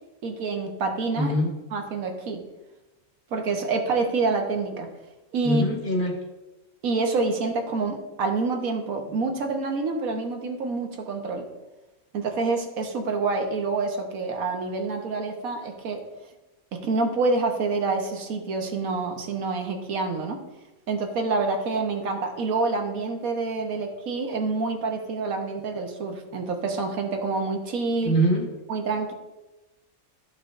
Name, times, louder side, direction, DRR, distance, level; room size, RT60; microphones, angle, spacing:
voice 1, 0.2-1.3 1.7-2.4 3.3-4.9 5.3-5.6 6.8-11.5 12.1-16.0 16.7-20.4 20.9-28.1 28.7-29.1, right 3 dB, 75° right, 3 dB, 1.5 m, -27 dB
voice 2, 1.2-1.5 5.4-6.2 28.0-28.5, equal, 40° left, 0 dB, 1.2 m, -23 dB
14.5 x 5.1 x 2.6 m, 1.1 s
omnidirectional pair, 1.5 m